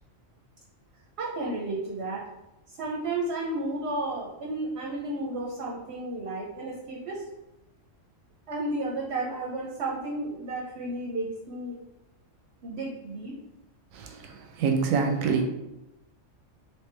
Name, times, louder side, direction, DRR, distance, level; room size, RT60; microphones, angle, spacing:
voice 1, 1.2-2.2 2.7-7.2 8.5-11.8 12.6-13.3, right 2 dB, 60° right, -2 dB, 0.8 m, -32 dB
voice 2, 14.6-15.4, right 5 dB, 90° right, 4 dB, 1.0 m, -25 dB
3.3 x 2.9 x 3.2 m, 0.94 s
omnidirectional pair, 1.4 m